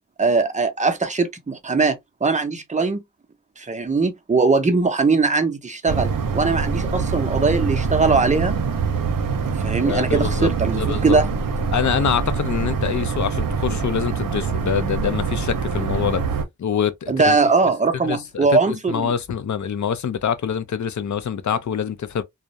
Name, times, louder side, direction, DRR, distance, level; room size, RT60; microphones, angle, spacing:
voice 1, 0.2-3.0 3.6-8.5 9.6-11.3 17.1-19.1, right 4 dB, 25° right, 0.5 m, -20 dB
sound 1, 5.9-16.5, right 5 dB, 85° right, 0.6 m, -24 dB
voice 2, 9.8-11.2 11.7-16.2 16.6-17.4 18.0-18.6 18.9-22.2, left 8 dB, 65° left, 0.5 m, -25 dB
2.3 x 2.0 x 2.6 m
wide cardioid pair, 85°, 32 cm